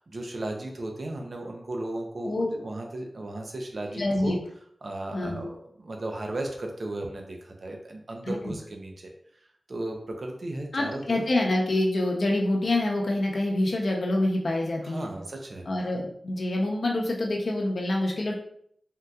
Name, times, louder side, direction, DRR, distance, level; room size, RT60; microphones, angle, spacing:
voice 1, 0.0-4.4 4.8-11.2 14.8-15.7, right 1 dB, 65° right, 2 dB, 0.6 m, -35 dB
voice 2, 3.9-4.4 5.1-5.5 8.2-8.5 10.7-15.1 15.7-18.4, left 1 dB, 70° left, 0 dB, 0.7 m, -26 dB
3.6 x 2.7 x 2.3 m, 0.66 s
wide cardioid pair, 60°, 0 cm